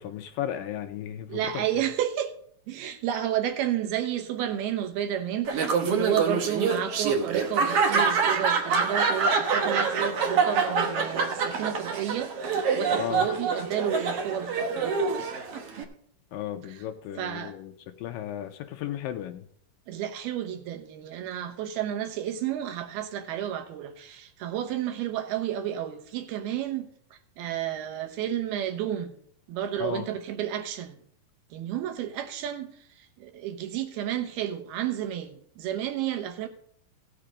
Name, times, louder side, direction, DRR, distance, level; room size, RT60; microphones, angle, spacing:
voice 1, 0.0-1.4 13.0-13.3 16.3-17.7 18.0-19.4 29.8-30.0, left 11 dB, 80° left, 2.3 m, -34 dB
voice 2, 1.3-2.4 2.7-15.3 16.7-16.8 17.2-17.5 19.9-26.9 27.4-29.1 29.5-31.0 31.5-32.7 33.2-36.5, right 10 dB, 90° right, 3.1 m, -31 dB
Laughter, 5.5-15.8, right 5 dB, 65° right, 1.5 m, -26 dB
15.5 x 6.8 x 5.0 m
omnidirectional pair, 4.3 m